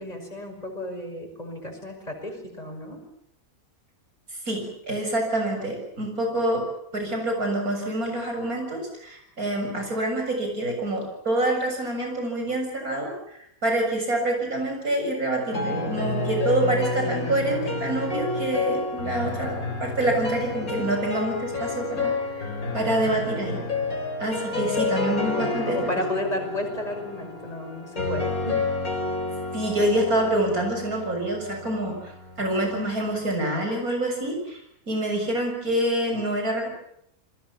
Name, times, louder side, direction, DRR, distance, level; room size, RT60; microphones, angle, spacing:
voice 1, 0.0-3.0 25.3-28.6, left 1 dB, 25° left, 2 dB, 6.3 m, -33 dB
voice 2, 4.5-6.7 6.9-22.5 22.7-23.6 24.2-25.9 29.5-32.1 32.4-34.6 34.9-36.7, right 1 dB, 85° right, 3 dB, 7.6 m, -26 dB
sound 1, 15.5-33.4, left 3 dB, 80° left, 4.4 m, -30 dB
29.0 x 21.5 x 7.3 m, 0.73 s
omnidirectional pair, 1.5 m